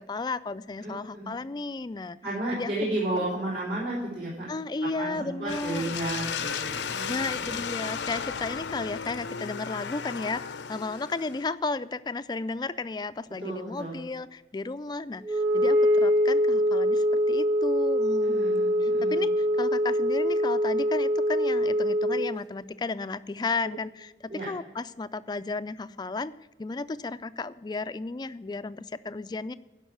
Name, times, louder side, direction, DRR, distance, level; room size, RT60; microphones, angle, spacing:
voice 1, 0.0-2.2 2.5-3.0 4.5-5.9 7.1-24.1 24.5-26.3 26.6-29.5, left 3 dB, 25° left, 15 dB, 0.3 m, -34 dB
voice 2, 0.8-1.3 2.2-4.5 5.0-7.6 13.4-14.0 18.2-19.2 24.3-24.5, right 1 dB, 65° right, -8 dB, 4.0 m, -33 dB
sound 1, 5.5-11.5, left 6 dB, 80° left, 0.6 m, -34 dB
Wind instrument woodwind instrument, 15.2-22.4, equal, 25° right, 0.8 m, -24 dB
12.0 x 5.4 x 8.5 m, 1.1 s
head